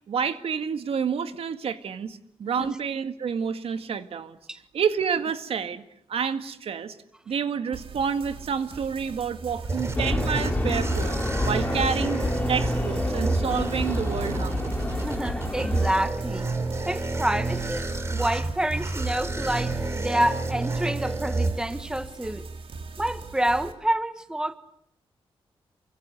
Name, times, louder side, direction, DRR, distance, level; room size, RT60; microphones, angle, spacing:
voice 1, 0.1-4.4 4.7-5.8 6.1-7.0 7.3-11.2 11.5-12.2 12.5-14.7, right 6 dB, 85° right, 1.9 m, -29 dB
sound 1, 7.7-23.7, right 5 dB, 65° right, 3.1 m, -42 dB
sound 2, 9.2-22.1, right 3 dB, 30° right, 3.5 m, -29 dB
sound 3, 10.0-15.9, left 2 dB, 15° left, 2.8 m, -29 dB
voice 2, 14.9-16.5 16.8-17.8 18.1-22.5 23.0-24.6, right 1 dB, 5° right, 1.4 m, -28 dB
28.5 x 24.5 x 8.1 m
wide cardioid pair, 150°, 10 cm